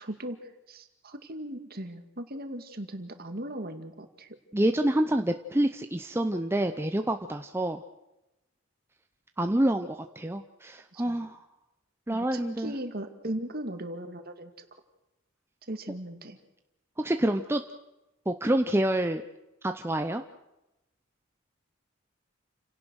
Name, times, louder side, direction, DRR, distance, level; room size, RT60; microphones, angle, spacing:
voice 1, 0.0-4.4 10.9-11.2 12.1-14.7 15.7-16.4, right 1 dB, 45° right, 7 dB, 2.2 m, -38 dB
voice 2, 4.5-7.8 9.4-11.4 12.1-12.7 17.0-17.6 18.3-19.2 19.6-20.2, right 1 dB, 10° right, 6 dB, 0.7 m, -27 dB
29.0 x 17.5 x 6.4 m, 0.97 s
head